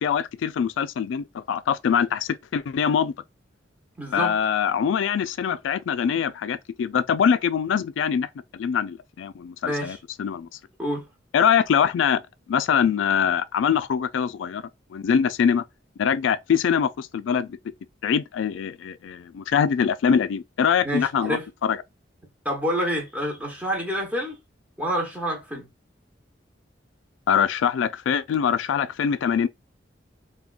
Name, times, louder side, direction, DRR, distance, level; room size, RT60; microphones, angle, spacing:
voice 1, 0.0-3.1 4.1-8.3 8.5-10.5 11.3-12.2 12.5-14.6 14.9-15.6 16.0-17.6 18.0-21.8 27.3-29.5, left 7 dB, 90° left, 0.3 m, -23 dB
voice 2, 4.0-4.4 9.6-10.0 10.8-11.1 20.8-21.4 22.4-24.4 24.8-25.7, equal, 10° right, 1.0 m, -27 dB
3.6 x 2.2 x 2.4 m
head